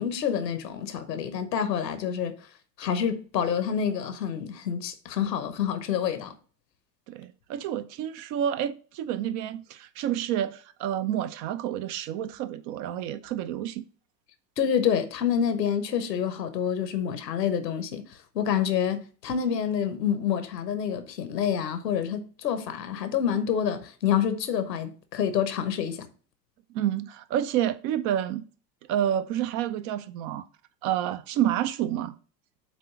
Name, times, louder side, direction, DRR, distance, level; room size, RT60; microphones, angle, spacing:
voice 1, 0.0-2.3 2.8-6.3 14.6-18.0 18.3-26.1, left 8 dB, 75° left, 1.1 m, -27 dB
voice 2, 7.1-13.8 26.7-28.4 28.9-30.5 30.8-32.2, right 11 dB, 40° right, 0.5 m, -29 dB
7.7 x 3.0 x 5.6 m
figure-of-eight pair, 80°, 50 cm